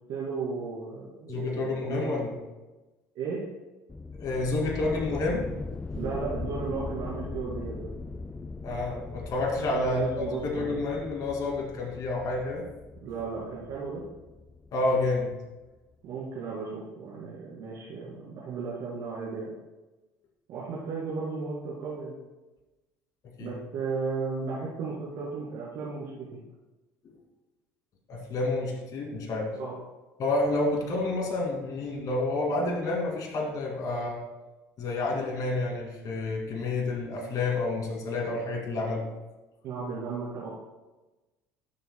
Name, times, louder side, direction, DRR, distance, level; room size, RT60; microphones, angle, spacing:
voice 1, 0.1-2.1 3.1-3.4 5.9-7.9 9.7-10.8 13.0-14.0 16.0-19.5 20.5-22.1 23.4-26.3 29.6-29.7 39.6-40.5, right 4 dB, 60° right, -6 dB, 2.4 m, -34 dB
voice 2, 1.3-2.3 4.2-5.5 8.6-12.6 14.7-15.3 23.4-23.5 28.1-29.5 30.2-34.2 34.8-39.0, left 2 dB, 50° left, 0 dB, 2.5 m, -29 dB
sound 1, 3.9-15.3, left 3 dB, 15° left, 0.4 m, -39 dB
12.0 x 6.9 x 2.2 m, 1.1 s
hypercardioid pair, 75°, 8 cm